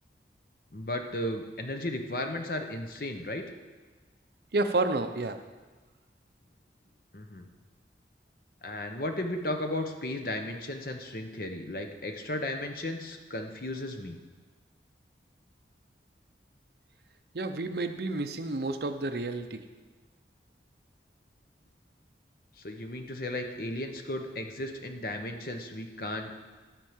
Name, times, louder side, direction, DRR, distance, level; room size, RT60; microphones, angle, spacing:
voice 1, 0.7-3.4 7.1-7.5 8.6-14.2 22.6-26.3, left 1 dB, 55° left, 5 dB, 1.0 m, -35 dB
voice 2, 4.5-5.4 17.3-19.6, right 2 dB, 65° right, 8 dB, 0.7 m, -30 dB
13.5 x 4.6 x 7.3 m, 1.4 s
head